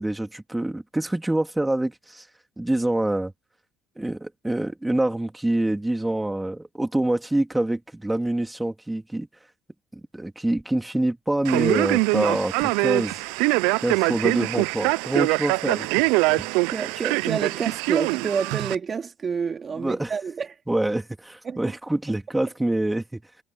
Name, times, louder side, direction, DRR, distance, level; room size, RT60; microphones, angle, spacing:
voice 1, 0.0-2.3 2.6-3.3 3.9-9.3 9.9-13.2 13.8-16.5 19.7-20.1 20.7-23.2, right 1 dB, 10° right, 3.4 m, -26 dB
Male speech man speaking, 11.4-18.8, right 26 dB, 80° right, 0.4 m, -23 dB
voice 2, 16.7-20.6 21.4-21.6, right 6 dB, 40° right, 2.5 m, -28 dB
supercardioid pair, 80°, 0 cm